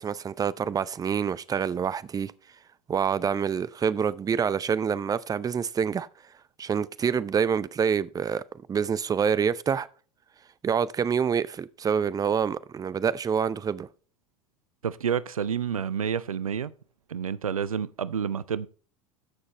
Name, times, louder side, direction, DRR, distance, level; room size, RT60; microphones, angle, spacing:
voice 1, 0.0-2.3 2.9-6.1 6.6-8.4 8.7-9.9 10.6-13.9, right 7 dB, 20° right, 0.6 m, -26 dB
voice 2, 14.8-16.7 17.1-18.7, right 7 dB, 90° right, 0.5 m, -29 dB
14.5 x 6.4 x 2.9 m
hypercardioid pair, 80°, 17 cm